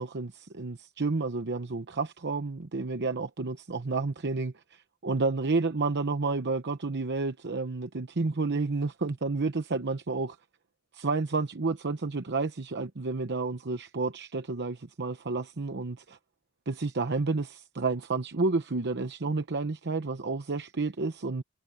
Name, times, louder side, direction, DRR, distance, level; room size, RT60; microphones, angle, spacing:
voice 1, 0.0-10.4 10.9-16.2 16.7-21.4, right 3 dB, 50° right, 0.9 m, -30 dB
head